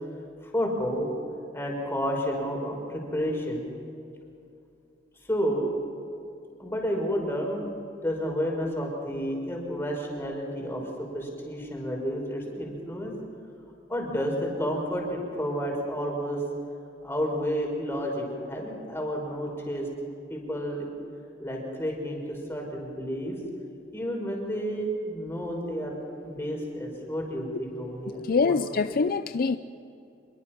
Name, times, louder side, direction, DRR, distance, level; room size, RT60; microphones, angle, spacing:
voice 1, 0.4-1.1 1.5-3.7 5.3-5.6 6.6-7.6 8.0-10.8 11.1-13.1 13.9-16.4 17.0-19.9 20.3-20.9 21.4-23.4 23.9-26.0 26.2-28.5 28.9-29.0, equal, 15° left, -1 dB, 5.6 m, -30 dB
voice 2, 28.2-29.6, left 4 dB, 55° left, 11 dB, 0.5 m, -24 dB
26.0 x 22.5 x 6.0 m, 2.6 s
head